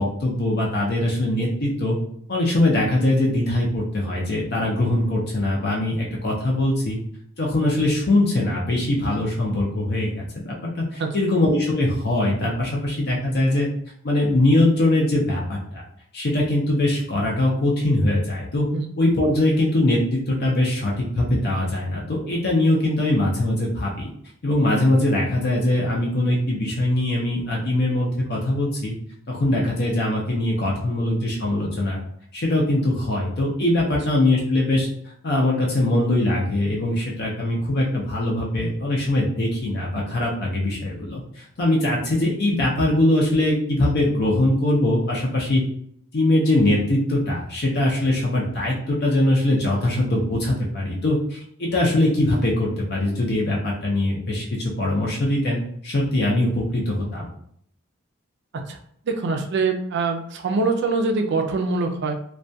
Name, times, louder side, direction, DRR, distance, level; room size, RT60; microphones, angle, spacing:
voice 1, 0.0-2.0 2.3-7.0 7.4-13.7 14.0-15.8 16.1-18.7 19.0-24.1 24.4-28.9 29.3-32.0 32.3-34.9 35.2-45.6 46.1-57.2, left 1 dB, 50° left, -3 dB, 0.5 m, -22 dB
voice 2, 59.1-62.1, right 3 dB, 55° right, 4 dB, 0.4 m, -23 dB
2.2 x 2.2 x 2.6 m, 0.67 s
head